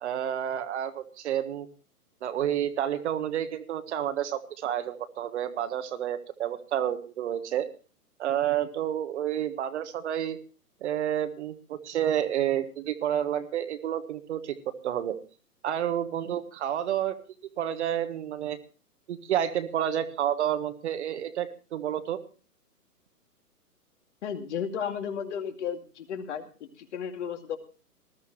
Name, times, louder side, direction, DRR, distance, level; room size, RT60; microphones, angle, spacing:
voice 1, 0.0-1.7 2.2-7.7 8.2-10.4 10.8-14.6 14.8-15.2 15.6-17.2 17.6-18.6 19.1-22.2, right 10 dB, 45° right, 10 dB, 1.4 m, -30 dB
voice 2, 24.2-27.6, left 7 dB, 45° left, 6 dB, 2.5 m, -34 dB
19.5 x 13.5 x 3.0 m, 0.37 s
figure-of-eight pair, 125°, 47 cm